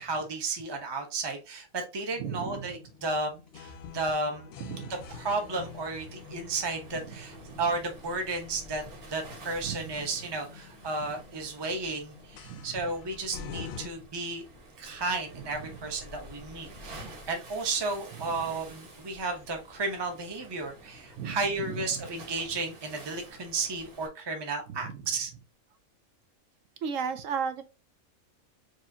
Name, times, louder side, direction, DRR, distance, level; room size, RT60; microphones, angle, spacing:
voice 1, 0.0-4.5 5.1-8.8 9.1-14.4 14.8-25.3, right 3 dB, 20° right, 0.7 m, -33 dB
sound 1, 2.1-13.9, left 6 dB, 65° left, 0.6 m, -47 dB
voice 2, 2.2-2.7 4.6-5.0 6.9-7.1 7.5-7.6 9.6-10.1 11.0-11.1 12.4-12.8 15.6-15.8 21.2-22.1 24.7-25.0 26.8-27.6, right 6 dB, 70° right, 0.9 m, -36 dB
Waves surf, 4.9-24.1, right 1 dB, 90° right, 1.9 m, -50 dB
4.8 x 3.1 x 2.8 m
omnidirectional pair, 1.5 m